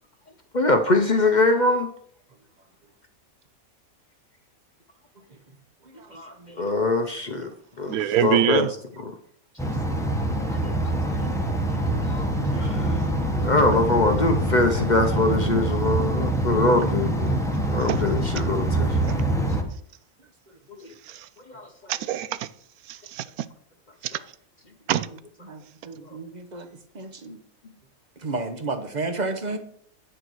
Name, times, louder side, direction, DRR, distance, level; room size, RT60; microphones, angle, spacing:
voice 1, 0.5-1.9 6.1-7.5 7.8-8.7 10.5-10.7 11.1-11.3 11.9-12.3 12.5-13.0 13.4-17.4 17.7-19.0 21.5-21.7, left 2 dB, 40° left, 0.7 m, -23 dB
voice 2, 7.9-8.7 17.9-18.0 19.0-19.1 21.1-21.3 21.9-22.5 22.9-23.5 24.0-24.2 24.9-25.1, right 11 dB, 85° right, 1.1 m, -25 dB
sound 1, 9.6-19.6, right 1 dB, ahead, 1.0 m, -25 dB
voice 3, 25.4-26.7 26.9-27.4 28.2-29.6, right 3 dB, 35° right, 0.9 m, -32 dB
8.7 x 6.6 x 4.6 m
omnidirectional pair, 1.5 m